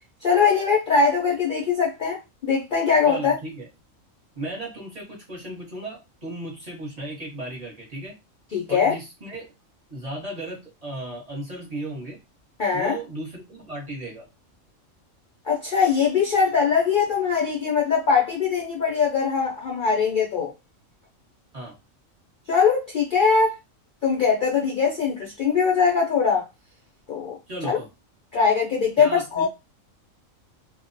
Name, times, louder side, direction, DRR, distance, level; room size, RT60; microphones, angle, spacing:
voice 1, 0.2-3.4 8.5-8.9 12.6-13.0 15.4-20.5 22.5-23.6 24.0-26.4 27.1-27.4 27.6-27.8 28.3-29.5, left 5 dB, 55° left, 0.5 m, -21 dB
voice 2, 3.0-3.7 4.3-8.1 8.7-9.5 9.9-12.2 12.7-14.2 21.5-21.7 27.5-27.9 29.0-29.5, right 1 dB, 35° right, 0.9 m, -35 dB
2.3 x 2.1 x 2.5 m
omnidirectional pair, 1.4 m